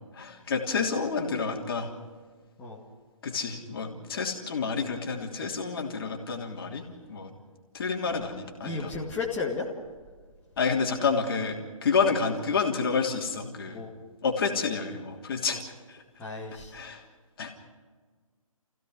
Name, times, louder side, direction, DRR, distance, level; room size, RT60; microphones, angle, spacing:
voice 1, 0.1-1.9 3.2-7.3 7.7-8.9 10.6-13.8 14.2-15.6 15.9-16.0 16.7-17.0 17.4-17.5, left 5 dB, 40° left, 2 dB, 3.1 m, -29 dB
voice 2, 8.6-9.7 11.9-12.0 13.7-13.9 16.2-16.7, left 4 dB, 10° left, -5 dB, 2.3 m, -33 dB
29.0 x 16.0 x 6.3 m, 1.5 s
figure-of-eight pair, 145°, 18 cm